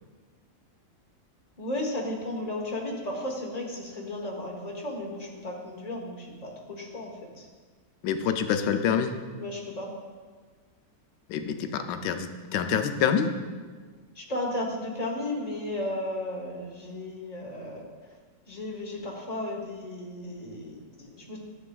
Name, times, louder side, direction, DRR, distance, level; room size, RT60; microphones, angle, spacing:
voice 1, 1.6-7.5 9.4-9.9 14.1-18.2 18.5-21.4, left 1 dB, 30° left, 0 dB, 0.8 m, -34 dB
voice 2, 8.0-9.1 11.3-13.3, left 7 dB, 80° left, 7 dB, 1.2 m, -26 dB
10.0 x 7.2 x 2.3 m, 1.5 s
omnidirectional pair, 1.9 m